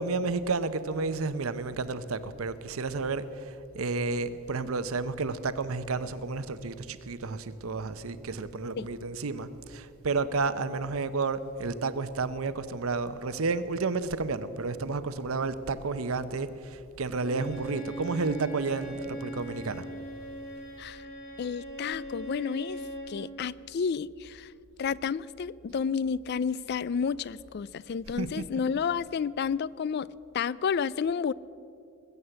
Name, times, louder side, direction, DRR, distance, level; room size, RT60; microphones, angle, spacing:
voice 1, 0.0-19.9 28.1-28.4, right 3 dB, 85° right, 0.8 m, -31 dB
Bowed string instrument, 17.1-23.2, right 2 dB, 75° left, 3.7 m, -40 dB
voice 2, 21.4-22.8 23.1-24.5 24.8-30.1 30.3-31.3, left 6 dB, 50° left, 0.3 m, -31 dB
20.0 x 8.1 x 7.9 m
head